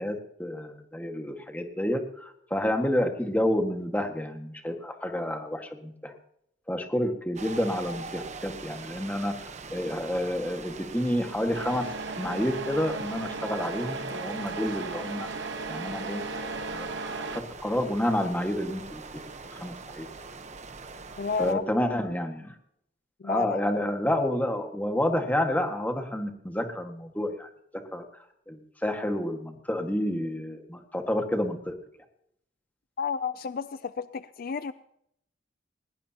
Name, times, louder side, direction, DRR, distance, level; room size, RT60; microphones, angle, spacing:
voice 1, 0.0-6.1 6.7-9.3 9.7-11.8 12.2-19.0 19.5-20.1 21.4-22.5 23.2-27.5 27.9-28.0 28.5-31.7, left 1 dB, 10° left, 4 dB, 1.7 m, -29 dB
sound 1, 7.3-21.5, right 4 dB, 40° right, 1.0 m, -43 dB
Truck, 11.5-17.4, right 3 dB, 70° right, 1.1 m, -36 dB
voice 2, 21.2-21.6 23.2-23.6 33.0-34.7, left 5 dB, 50° left, 13 dB, 0.4 m, -31 dB
20.0 x 18.5 x 2.9 m, 0.74 s
head